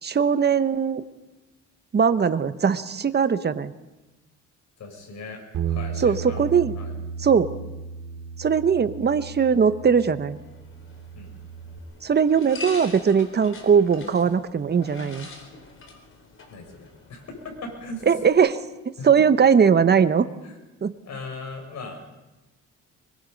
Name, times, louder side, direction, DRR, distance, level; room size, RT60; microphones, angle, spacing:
voice 1, 0.0-1.0 1.9-3.7 6.0-6.7 7.2-7.5 8.4-10.4 12.0-15.3 18.1-18.6 19.0-20.2 20.8-20.9, right 6 dB, 35° right, 12 dB, 1.1 m, -20 dB
voice 2, 4.8-6.5 6.7-6.9 11.2-11.3 16.5-18.1 19.0-19.3 20.4-20.6 21.0-22.1, left 2 dB, 65° left, 3 dB, 6.3 m, -38 dB
Bass guitar, 5.5-11.8, right 6 dB, 75° right, 2.3 m, -34 dB
sound 1, 10.3-18.3, left 2 dB, 45° left, 4.2 m, -44 dB
24.0 x 22.0 x 5.3 m, 1.1 s
cardioid pair, 90°, 30 cm